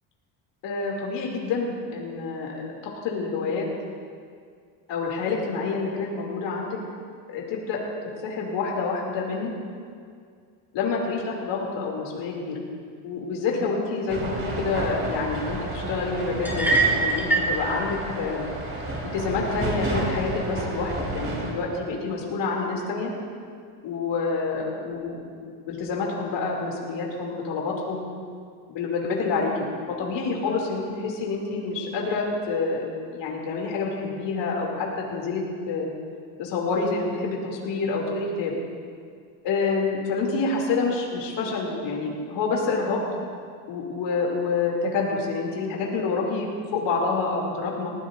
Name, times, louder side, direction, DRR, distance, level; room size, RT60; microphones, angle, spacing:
voice 1, 0.6-3.7 4.9-6.8 7.3-7.8 8.2-9.5 10.7-12.6 13.0-18.4 19.1-23.1 23.8-28.0 28.7-35.9 36.4-38.5 39.4-43.0 43.7-47.9, left 4 dB, 65° left, -2 dB, 3.1 m, -28 dB
sound 1, 14.1-21.5, right 2 dB, 30° right, 3.5 m, -31 dB
sound 2, 16.4-17.6, right 3 dB, 5° right, 3.7 m, -22 dB
19.5 x 15.0 x 2.7 m, 2.1 s
supercardioid pair, 100°, 46 cm